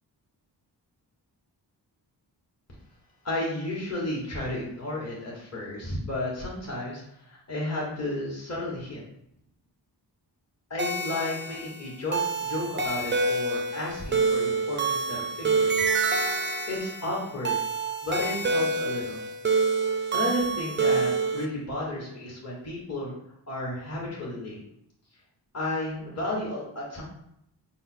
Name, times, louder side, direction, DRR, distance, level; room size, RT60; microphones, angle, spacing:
voice 1, 3.2-9.0 10.7-12.2 12.5-15.8 16.7-17.6 18.0-19.2 20.1-23.1 23.5-24.6 25.5-27.0, left 1 dB, 35° left, -5 dB, 1.2 m, -32 dB
sound 1, 10.8-21.5, right 3 dB, 30° right, 0.3 m, -27 dB
3.6 x 2.1 x 4.2 m, 0.76 s
cardioid pair, 60°, 43 cm